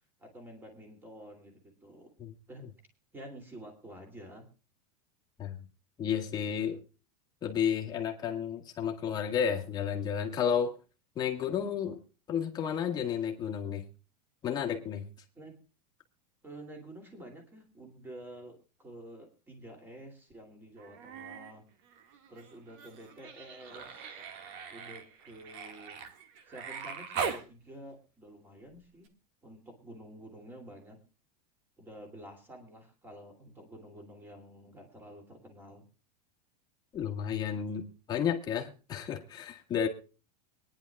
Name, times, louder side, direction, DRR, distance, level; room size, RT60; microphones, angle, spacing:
voice 1, 0.2-2.1 2.5-2.6 3.1-4.5 15.3-15.6 16.4-21.6 22.3-24.3 24.7-26.0 26.5-29.1 29.4-31.0 31.8-35.8, right 1 dB, 10° right, 2.7 m, -49 dB
voice 2, 6.0-6.8 7.4-10.7 11.2-12.0 12.3-13.9 14.4-15.1 36.9-39.9, left 8 dB, 20° left, 1.7 m, -32 dB
Human voice, 20.8-21.5 21.8-27.5 29.0-29.1, right 6 dB, 45° right, 1.8 m, -41 dB
24.0 x 10.5 x 2.3 m
supercardioid pair, 170°, 21 cm